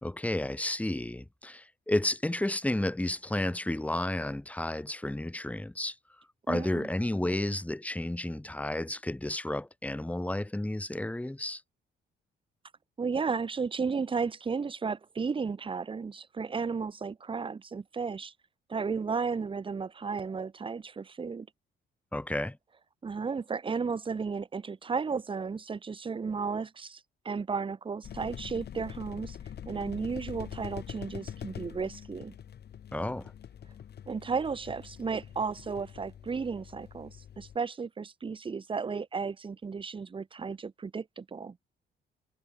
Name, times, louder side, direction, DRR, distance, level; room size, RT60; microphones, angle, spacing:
voice 1, 0.0-5.9 6.5-11.6 22.1-22.6 32.9-33.3, left 1 dB, 5° left, 1.4 m, -32 dB
voice 2, 6.5-6.9 13.0-18.3 18.7-21.5 23.0-29.4 29.7-32.3 34.1-41.6, right 5 dB, 25° right, 0.8 m, -34 dB
sound 1, 28.0-37.6, left 9 dB, 55° left, 1.7 m, -44 dB
cardioid pair, 90°, 20 cm